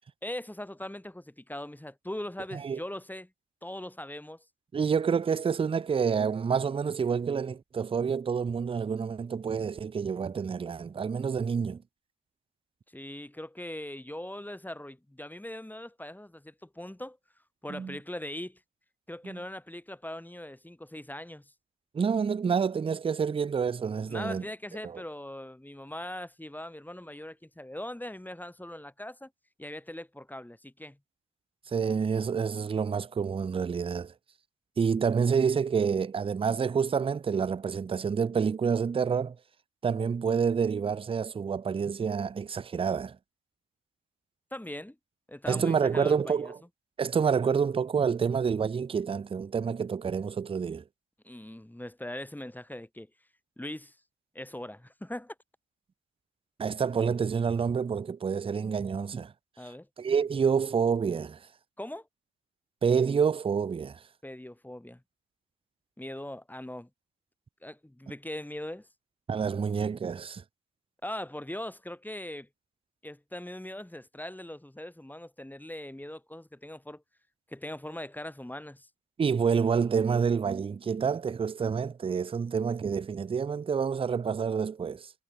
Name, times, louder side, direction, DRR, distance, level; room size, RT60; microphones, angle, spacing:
voice 1, 0.2-3.3 3.6-4.4 12.9-17.2 17.6-18.6 19.1-21.5 24.1-29.3 29.6-31.0 44.5-45.0 45.3-46.5 51.2-53.1 53.6-54.0 54.3-55.4 59.6-59.9 61.8-62.1 64.2-65.0 66.0-66.9 67.6-68.9 71.0-72.5 73.0-77.0 77.5-78.9, left 1 dB, 5° left, 4.0 m, -40 dB
voice 2, 4.7-11.8 17.7-18.0 19.2-19.4 21.9-24.4 24.8-25.0 31.7-34.1 34.8-39.4 39.8-43.2 45.5-46.6 47.0-50.8 56.6-59.3 60.0-61.4 62.8-64.0 69.3-70.4 79.2-85.1, right 6 dB, 20° right, 0.4 m, -28 dB
cardioid pair, 90°, 30 cm